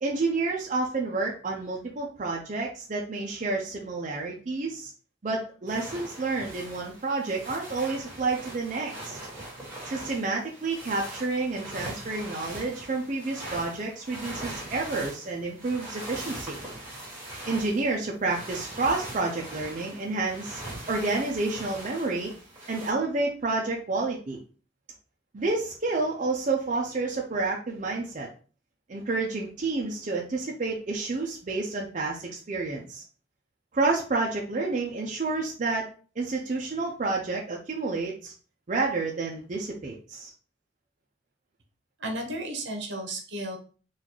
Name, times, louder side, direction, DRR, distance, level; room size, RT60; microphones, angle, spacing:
voice 1, 0.0-4.9 5.2-9.2 9.9-16.6 17.5-20.6 20.9-22.3 22.7-24.4 25.3-28.3 28.9-33.0 33.7-35.8 36.2-38.3 38.7-40.3, right 3 dB, 40° right, -1 dB, 0.5 m, -29 dB
sound 1, 5.7-22.9, right 1 dB, 10° right, 1.6 m, -41 dB
voice 2, 42.0-43.6, right 1 dB, 70° right, 3 dB, 0.9 m, -33 dB
4.0 x 2.3 x 2.9 m, 0.38 s
head